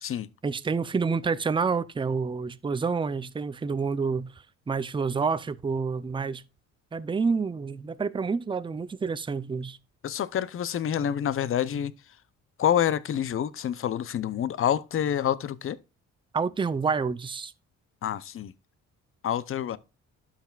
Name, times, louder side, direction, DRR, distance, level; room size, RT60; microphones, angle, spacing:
voice 1, 0.4-4.3 4.7-6.4 6.9-9.8 16.3-17.5, right 5 dB, 15° right, 0.5 m, -28 dB
voice 2, 10.0-12.2 12.6-15.8 18.0-18.5 19.2-19.8, left 9 dB, 45° left, 0.6 m, -27 dB
11.5 x 5.9 x 2.4 m
cardioid pair, 90°, 30 cm